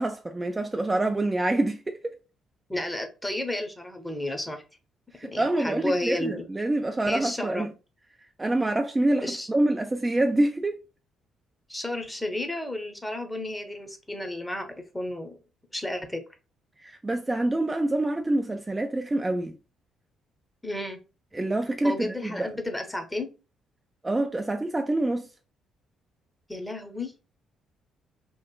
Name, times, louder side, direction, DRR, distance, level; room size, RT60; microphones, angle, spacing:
voice 1, 0.0-2.2 5.1-7.7 8.4-10.8 16.8-19.5 21.3-22.5 24.0-25.3, right 1 dB, 20° right, 0.3 m, -26 dB
voice 2, 2.7-4.6 5.3-6.5 7.1-7.7 9.2-9.5 11.7-14.7 14.9-15.4 15.7-16.2 20.6-21.0 21.8-23.3 26.5-27.1, left 1 dB, 10° left, 0.8 m, -32 dB
2.9 x 2.4 x 2.2 m
hypercardioid pair, 45°, 0 cm